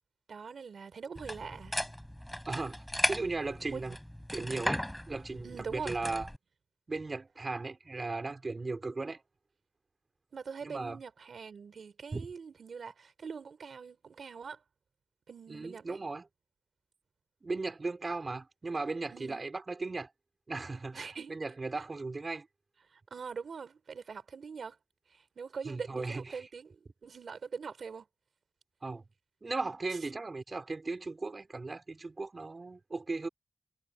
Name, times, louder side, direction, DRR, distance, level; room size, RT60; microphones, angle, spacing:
voice 1, 0.3-1.8 3.7-3.9 5.4-6.0 10.3-14.6 15.3-16.0 19.1-19.4 20.9-21.4 22.9-24.8 25.1-28.1, right 5 dB, 80° right, 3.9 m, -43 dB
sound 1, 1.2-6.4, equal, 5° left, 3.9 m, -36 dB
voice 2, 2.5-3.9 4.3-6.3 6.9-9.2 10.6-11.0 12.1-12.3 15.5-16.2 17.4-20.1 20.5-22.5 25.6-26.4 28.8-29.0 29.4-33.3, right 3 dB, 40° right, 4.8 m, -37 dB
wide cardioid pair, 100°, 0 cm